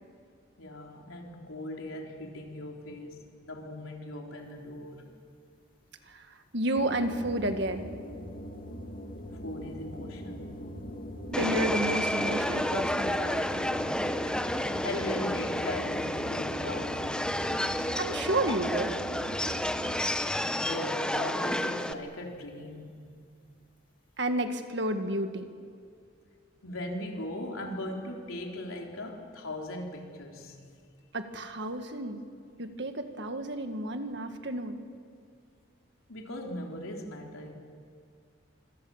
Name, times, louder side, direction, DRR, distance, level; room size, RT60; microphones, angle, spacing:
voice 1, 0.6-5.1 9.3-10.6 14.2-17.3 20.2-22.9 26.6-30.6 36.1-37.5, left 1 dB, 85° left, 0 dB, 4.0 m, -39 dB
voice 2, 6.1-7.9 11.3-13.5 18.0-19.0 24.2-25.5 31.1-32.2 32.6-34.8, right 1 dB, 55° right, 7 dB, 1.7 m, -31 dB
sound 1, 6.7-20.4, equal, 45° left, 2.3 m, -41 dB
Subway metro underground, 11.3-21.9, left 1 dB, 5° left, 0.7 m, -30 dB
25.5 x 25.5 x 7.2 m, 2.2 s
head